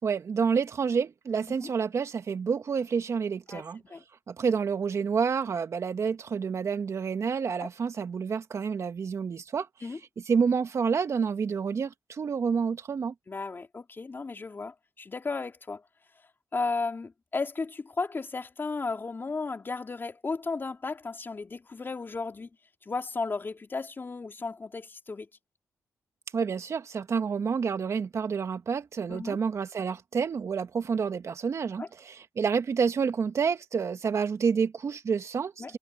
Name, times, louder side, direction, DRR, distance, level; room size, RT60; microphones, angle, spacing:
voice 1, 0.0-3.8 4.3-9.7 10.3-13.1 26.3-35.8, right 6 dB, 60° right, 2.4 m, -29 dB
voice 2, 13.3-15.8 16.5-22.5 22.8-25.3 29.1-29.4 31.8-31.9 35.6-35.7, left 4 dB, 40° left, 3.2 m, -34 dB
cardioid pair, 60°, 6 cm